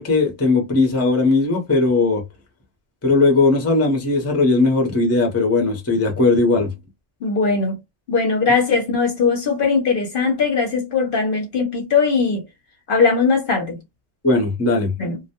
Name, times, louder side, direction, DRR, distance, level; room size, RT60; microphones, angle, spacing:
voice 1, 0.0-2.2 3.0-6.7 14.2-14.9, left 3 dB, 15° left, 0.5 m, -18 dB
voice 2, 7.2-7.8 8.1-12.4 12.9-13.8 15.0-15.2, left 4 dB, 55° left, 0.8 m, -19 dB
2.2 x 2.1 x 2.8 m
omnidirectional pair, 1.2 m